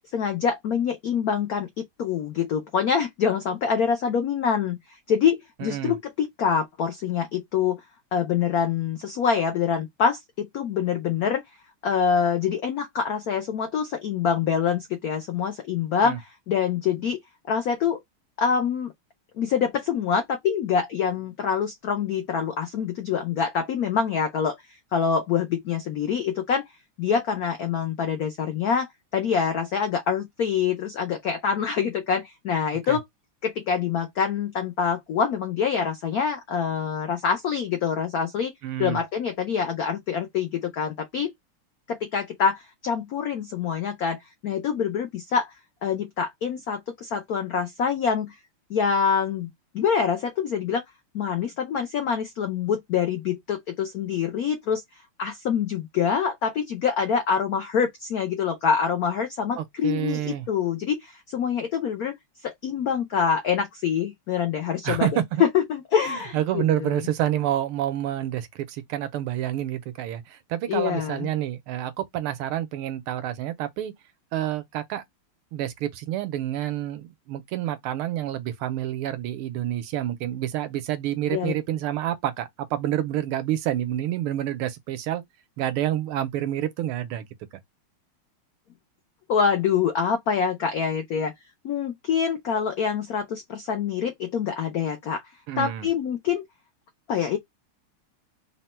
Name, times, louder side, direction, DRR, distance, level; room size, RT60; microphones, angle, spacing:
voice 1, 0.1-4.8 5.1-7.8 8.1-11.4 11.8-17.2 17.5-18.0 18.4-18.9 19.4-24.6 24.9-26.6 27.0-33.0 33.4-38.5 38.8-41.3 41.9-45.5 45.8-48.3 48.7-50.8 51.1-54.8 55.2-62.1 62.4-65.1 65.4-67.0 70.7-71.3 81.3-81.5 89.3-91.3 91.6-95.2 95.6-96.4 97.1-97.4, left 7 dB, 85° left, 0.8 m, -25 dB
voice 2, 5.6-6.0 16.0-16.2 32.9-33.0 38.6-39.0 59.6-60.5 64.8-65.4 66.1-73.9 74.3-75.0 75.5-85.2 85.6-87.3 95.5-95.9, right 12 dB, 80° right, 1.6 m, -28 dB
3.9 x 2.2 x 4.2 m
omnidirectional pair, 2.4 m